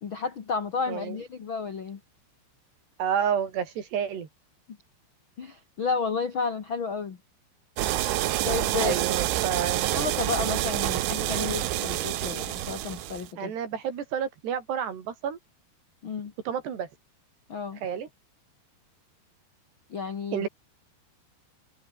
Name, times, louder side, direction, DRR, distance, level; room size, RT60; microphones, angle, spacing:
voice 1, 0.0-2.0 5.4-7.2 8.4-9.0 9.9-13.5 16.0-16.3 17.5-17.8 19.9-20.5, left 5 dB, 80° left, 1.1 m, -31 dB
voice 2, 0.9-1.2 3.0-4.3 8.8-9.8 13.4-15.4 16.5-16.9 17.8-18.1 20.3-20.5, right 8 dB, 65° right, 5.2 m, -30 dB
sound 1, 7.8-13.3, right 15 dB, 85° right, 3.9 m, -28 dB
omnidirectional pair, 5.4 m